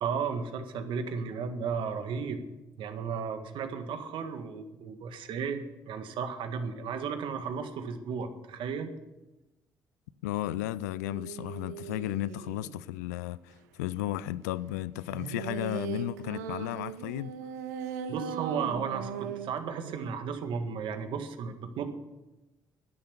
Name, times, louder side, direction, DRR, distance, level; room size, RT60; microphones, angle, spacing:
voice 1, 0.0-2.4 2.8-8.9 18.1-21.9, right 6 dB, 65° right, 1.7 m, -34 dB
voice 2, 10.2-17.4, left 15 dB, 85° left, 0.4 m, -34 dB
sound 1, 11.0-12.8 15.1-20.1, right 8 dB, 85° right, 0.8 m, -39 dB
13.0 x 10.5 x 7.0 m
hypercardioid pair, 50°, 9 cm